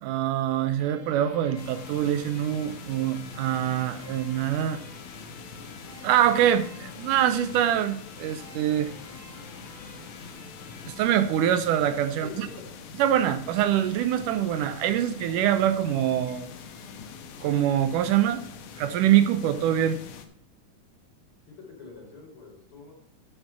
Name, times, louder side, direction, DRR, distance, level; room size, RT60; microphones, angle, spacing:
voice 1, 0.0-4.8 6.0-8.9 10.9-12.5 13.0-16.5 17.4-18.4 18.8-20.0, right 11 dB, 80° right, 11 dB, 2.1 m, -24 dB
sound 1, 0.8-12.1, left 2 dB, 25° left, 2.7 m, -49 dB
sound 2, 1.6-20.3, left 5 dB, 75° left, 2.5 m, -44 dB
voice 2, 12.2-12.7 21.5-22.9, left 4 dB, 40° left, -4 dB, 5.3 m, -45 dB
11.5 x 5.1 x 5.8 m, 0.66 s
omnidirectional pair, 3.8 m